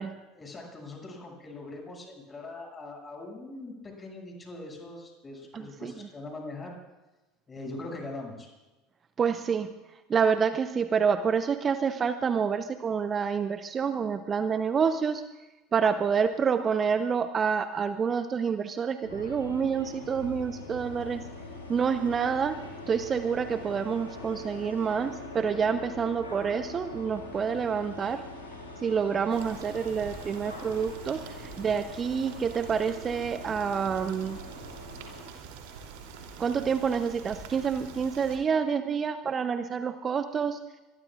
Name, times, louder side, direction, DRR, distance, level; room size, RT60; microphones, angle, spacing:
voice 1, 0.3-6.7 7.5-8.5, left 2 dB, 25° left, 1 dB, 6.9 m, -41 dB
voice 2, 5.5-5.9 9.2-9.7 10.1-15.2 15.7-21.2 21.7-22.6 22.9-28.2 28.8-34.4 36.4-40.6, right 6 dB, 30° right, 10 dB, 0.9 m, -28 dB
sound 1, 19.0-35.2, left 2 dB, 85° left, 4.3 m, -43 dB
sound 2, 29.3-38.4, right 6 dB, 60° right, 3.2 m, -45 dB
25.0 x 21.5 x 2.5 m, 1.1 s
figure-of-eight pair, 70°, 0 cm